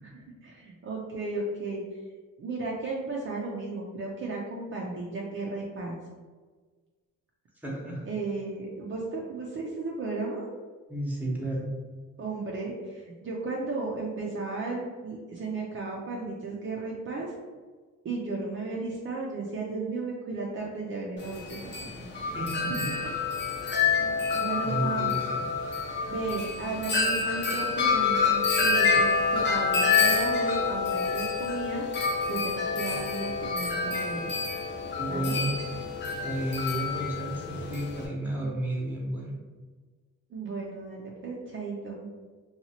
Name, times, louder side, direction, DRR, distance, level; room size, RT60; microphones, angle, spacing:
voice 1, 0.0-2.0 2.4-6.0 8.1-10.5 12.2-17.3 18.0-21.6 22.0-22.1 24.0-25.1 26.0-31.9 32.3-34.3 35.1-35.4 40.3-42.1, right 3 dB, 40° right, -3 dB, 0.5 m, -34 dB
voice 2, 7.6-8.0 10.9-11.7 22.2-22.9 24.6-25.1 35.0-35.5 36.2-39.3, right 1 dB, 5° right, -4 dB, 0.9 m, -32 dB
Wind chime, 21.2-38.1, left 5 dB, 40° left, 0.7 m, -27 dB
2.8 x 2.3 x 2.7 m, 1.4 s
cardioid pair, 90°, 30 cm